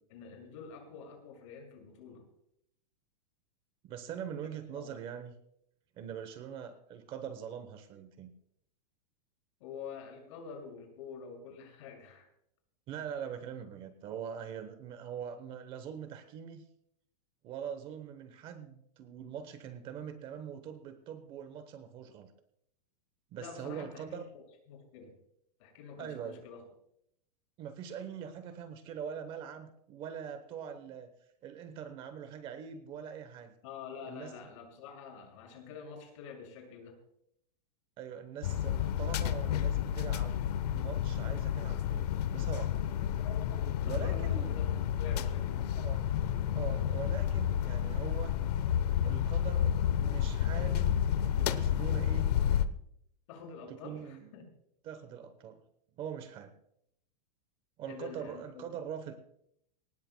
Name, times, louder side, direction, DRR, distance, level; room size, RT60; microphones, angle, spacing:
voice 1, 0.1-2.2 4.4-5.0 9.6-12.3 23.4-25.1 25.6-26.6 33.6-37.0 43.8-45.7 53.3-54.4 57.9-58.7, left 5 dB, 50° left, 2 dB, 6.2 m, -47 dB
voice 2, 3.8-5.3 6.0-8.3 12.9-16.7 17.4-22.3 23.3-24.3 26.0-26.4 27.6-31.1 31.4-33.5 34.1-34.3 38.0-40.4 40.7-42.7 43.6-44.6 45.8-46.1 46.5-48.4 49.0-52.3 53.7-54.3 54.8-55.6 56.0-56.5 57.8-59.1, right 8 dB, 25° right, 10 dB, 0.9 m, -43 dB
sound 1, 38.4-52.6, left 10 dB, 75° left, 1.0 m, -30 dB
23.0 x 19.0 x 2.2 m, 0.73 s
supercardioid pair, 170°, 21 cm